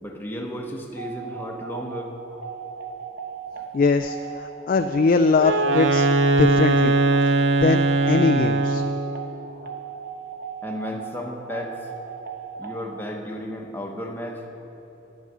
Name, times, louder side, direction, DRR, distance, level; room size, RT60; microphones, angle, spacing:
voice 1, 0.0-2.2 3.5-3.7 10.6-11.9 12.6-14.4, equal, 10° left, 1 dB, 0.9 m, -33 dB
sound 1, 1.0-13.0, right 6 dB, 50° right, 1.1 m, -37 dB
voice 2, 3.7-6.1 6.4-6.9 7.6-7.8 8.1-8.8, left 4 dB, 45° left, 6 dB, 0.3 m, -21 dB
Wind instrument woodwind instrument, 5.4-9.1, right 2 dB, 75° right, 0.6 m, -20 dB
11.0 x 9.2 x 6.1 m, 3.0 s
head